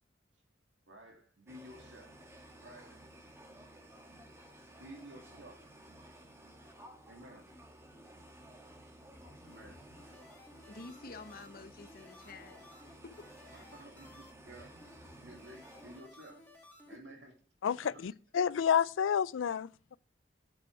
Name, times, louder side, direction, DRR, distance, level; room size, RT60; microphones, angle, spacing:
voice 1, 0.9-2.1 2.6-3.1 4.8-5.7 7.1-7.5 9.4-10.5 13.5-14.8 15.2-16.4 16.8-17.3 17.7-18.1, right 1 dB, 70° right, 2.4 m, -53 dB
sound 1, 1.5-16.0, right 1 dB, 15° right, 1.4 m, -55 dB
sound 2, 9.1-17.0, left 1 dB, 10° left, 2.0 m, -58 dB
voice 2, 10.7-13.3 16.9-17.0 18.1-18.2, left 3 dB, 50° left, 0.9 m, -50 dB
voice 3, 17.6-20.0, left 8 dB, 85° left, 0.4 m, -30 dB
8.5 x 7.9 x 4.6 m
head